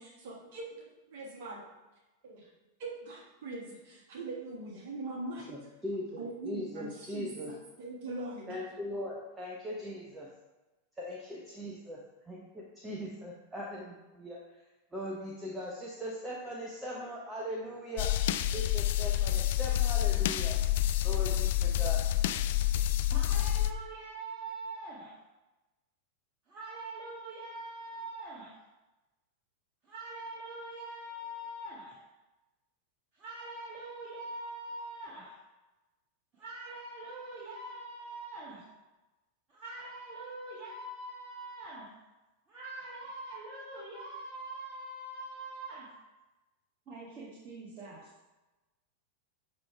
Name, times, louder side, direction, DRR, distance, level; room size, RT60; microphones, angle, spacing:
voice 1, 0.0-1.6 2.2-2.5 2.8-5.5 6.2-8.6, right 2 dB, 50° right, -2 dB, 1.4 m, -42 dB
voice 2, 5.5-7.5 8.5-10.3 11.0-14.4 14.9-18.1 18.5-20.6 21.0-22.0, left 1 dB, 10° right, -3 dB, 0.9 m, -40 dB
sound 1, 18.0-23.7, left 13 dB, 55° left, 0.3 m, -28 dB
voice 3, 23.1-25.1 26.5-28.5 29.9-31.9 33.2-35.3 36.4-38.6 39.5-41.9 42.5-45.9 46.9-48.0, right 2 dB, 30° right, -8 dB, 1.7 m, -43 dB
7.3 x 3.3 x 4.8 m, 1.1 s
figure-of-eight pair, 90°, 0 cm